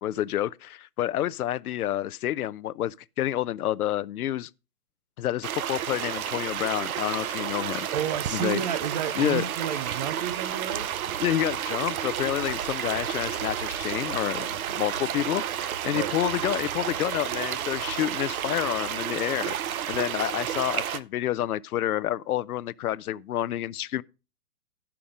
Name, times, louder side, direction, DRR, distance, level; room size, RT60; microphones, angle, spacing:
voice 1, 0.0-4.5 5.2-7.9 8.3-8.6 9.2-9.4 11.2-24.0, left 12 dB, 75° left, 0.5 m, -29 dB
sound 1, 5.4-21.0, right 10 dB, 65° right, 0.8 m, -31 dB
voice 2, 7.9-10.9 15.9-16.1, right 9 dB, 30° right, 0.4 m, -31 dB
11.0 x 5.8 x 4.9 m
hypercardioid pair, 125°, 46 cm